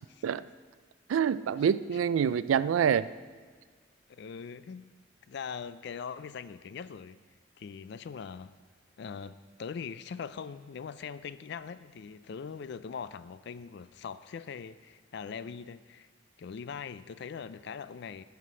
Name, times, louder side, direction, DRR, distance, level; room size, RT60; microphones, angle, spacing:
voice 1, 1.1-3.1, right 8 dB, 80° right, 0.3 m, -26 dB
voice 2, 4.1-4.9 5.3-7.2 7.6-8.6 9.0-16.1 16.4-18.2, left 6 dB, 55° left, 0.3 m, -41 dB
11.0 x 6.0 x 5.5 m
head